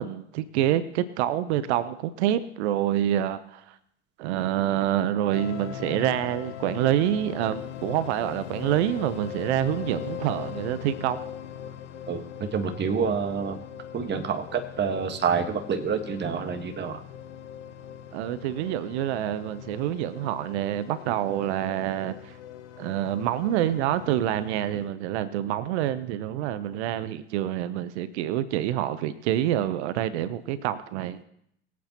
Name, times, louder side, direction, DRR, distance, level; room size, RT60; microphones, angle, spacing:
voice 1, 0.0-3.7 4.2-11.2 18.1-22.3 22.8-31.2, right 12 dB, 65° right, 14 dB, 0.9 m, -27 dB
sound 1, 5.3-24.9, left 9 dB, 80° left, 1.1 m, -40 dB
voice 2, 12.1-13.6 13.9-17.0, right 6 dB, 30° right, 5 dB, 1.5 m, -28 dB
22.5 x 8.5 x 3.0 m, 0.71 s
hypercardioid pair, 85°, 35 cm